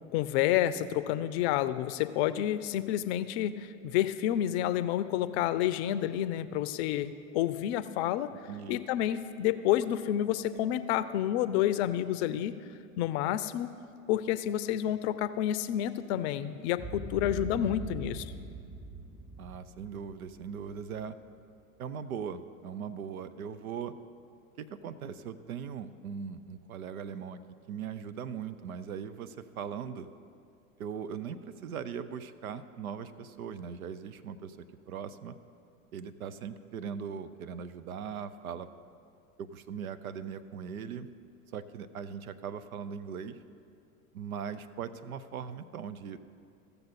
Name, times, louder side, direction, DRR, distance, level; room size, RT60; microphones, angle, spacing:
voice 1, 0.1-8.3 8.7-12.5 13.0-13.7 14.1-18.3, left 12 dB, 50° left, 14 dB, 0.5 m, -29 dB
voice 2, 8.5-8.8 17.5-18.0 19.4-21.2 21.8-23.9 24.6-27.4 27.7-30.1 30.8-34.6 34.9-35.3 35.9-38.7 39.4-41.1 41.5-43.4 44.1-46.2, right 7 dB, 80° right, 13 dB, 0.6 m, -40 dB
Boom, 16.8-21.0, right 3 dB, 5° right, 1.2 m, -42 dB
15.0 x 6.8 x 4.1 m, 2.4 s
hypercardioid pair, 85°, 42 cm